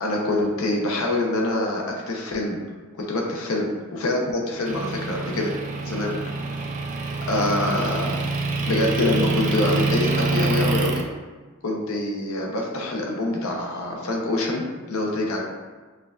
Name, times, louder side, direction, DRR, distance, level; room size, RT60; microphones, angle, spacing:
voice 1, 0.0-2.6 3.0-5.5 5.8-6.2 7.3-8.2 8.7-11.0 11.6-15.4, left 2 dB, 85° left, -1 dB, 0.6 m, -25 dB
Motor vehicle (road) / Engine, 4.7-11.0, right 3 dB, 35° right, 0.3 m, -26 dB
4.4 x 2.4 x 2.3 m, 1.3 s
head